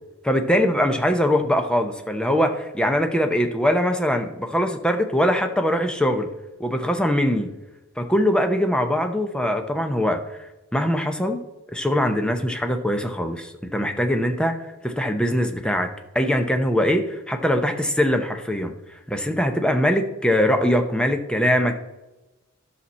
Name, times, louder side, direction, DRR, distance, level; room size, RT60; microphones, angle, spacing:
voice 1, 0.2-6.3 6.6-7.5 8.0-10.2 10.7-11.4 11.7-14.6 14.8-15.9 16.1-18.7 19.1-21.8, equal, 5° left, 6 dB, 0.7 m, -22 dB
13.0 x 5.9 x 4.2 m, 1.0 s
head